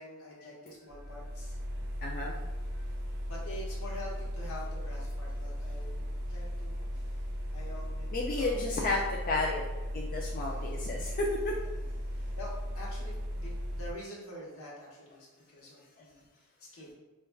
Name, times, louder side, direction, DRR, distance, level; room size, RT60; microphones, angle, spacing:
voice 1, 0.0-1.6 3.3-7.2 7.5-8.8 10.4-10.7 11.7-16.9, left 1 dB, 75° left, -4 dB, 1.0 m, -46 dB
sound 1, 0.9-13.9, equal, 50° right, 0.4 m, -37 dB
voice 2, 2.0-2.4 8.1-9.6 9.9-11.5, left 2 dB, 40° left, -2 dB, 0.3 m, -32 dB
4.9 x 2.2 x 2.2 m, 1.1 s
head